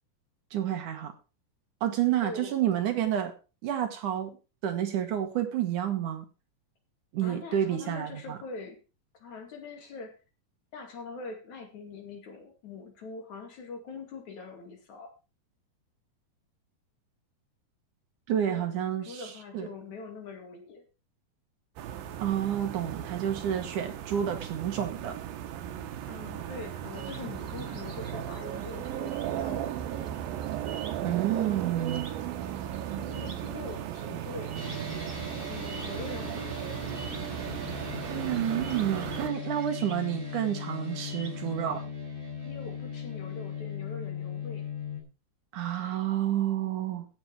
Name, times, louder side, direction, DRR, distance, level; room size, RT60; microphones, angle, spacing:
voice 1, 0.5-1.1 1.8-3.3 3.6-4.4 4.6-6.2 7.1-8.4 18.3-19.7 22.2-25.2 31.0-32.3 38.1-41.8 45.5-47.1, right 10 dB, 65° right, 6 dB, 2.7 m, -29 dB
voice 2, 2.2-3.0 7.2-8.8 9.1-10.2 10.7-15.1 18.3-20.8 26.1-29.9 33.0-34.6 35.0-35.1 35.5-36.6 42.4-44.7, left 4 dB, 55° left, 4 dB, 3.6 m, -43 dB
sound 1, 21.8-39.3, right 11 dB, 80° right, 2.8 m, -36 dB
sound 2, 26.8-41.5, right 4 dB, 30° right, 1.7 m, -49 dB
sound 3, 34.5-45.0, left 5 dB, 15° left, 4.0 m, -38 dB
16.0 x 7.3 x 4.6 m, 0.33 s
omnidirectional pair, 4.1 m